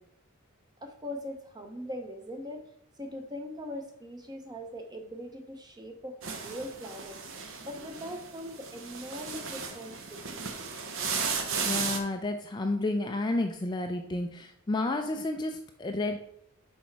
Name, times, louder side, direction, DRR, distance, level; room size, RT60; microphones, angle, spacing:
voice 1, 0.8-2.6 3.0-7.2 7.6-10.5, equal, 20° right, 4 dB, 0.8 m, -41 dB
sound 1, 6.2-12.0, right 5 dB, 60° right, 0.8 m, -35 dB
voice 2, 11.6-16.2, left 2 dB, 20° left, 5 dB, 0.4 m, -31 dB
6.2 x 4.2 x 4.6 m, 0.74 s
head